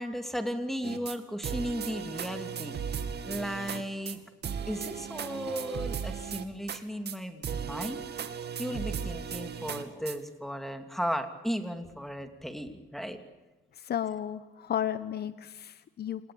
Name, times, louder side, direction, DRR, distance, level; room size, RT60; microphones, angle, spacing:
voice 1, 0.0-2.8 3.2-4.2 4.7-8.0 8.6-13.2, equal, ahead, 6 dB, 2.8 m, -35 dB
sound 1, 0.8-1.2 1.4-3.8 4.1-4.2 4.4-6.8 7.1-7.2 7.4-10.2, right 7 dB, 55° right, 2.4 m, -36 dB
voice 2, 13.8-16.3, left 10 dB, 55° left, 13 dB, 1.1 m, -33 dB
28.5 x 20.0 x 8.8 m, 1.1 s
cardioid pair, 90°, 20 cm